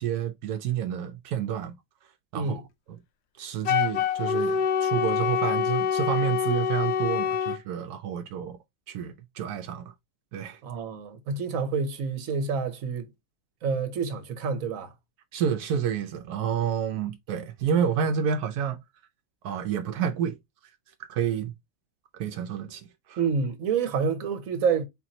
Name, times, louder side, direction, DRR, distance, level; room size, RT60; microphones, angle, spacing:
voice 1, 0.0-1.7 2.3-2.6 2.9-3.0 3.4-8.6 8.9-9.9 10.3-10.6 15.3-18.8 19.4-20.4 21.1-21.5 22.2-23.2, right 8 dB, 85° right, 1.2 m, -29 dB
Wind instrument woodwind instrument, 3.6-7.6, left 7 dB, 60° left, 0.7 m, -26 dB
voice 2, 10.6-13.1 13.6-14.9 23.2-24.8, right 5 dB, 65° right, 1.3 m, -28 dB
4.3 x 4.0 x 2.9 m
omnidirectional pair, 1.6 m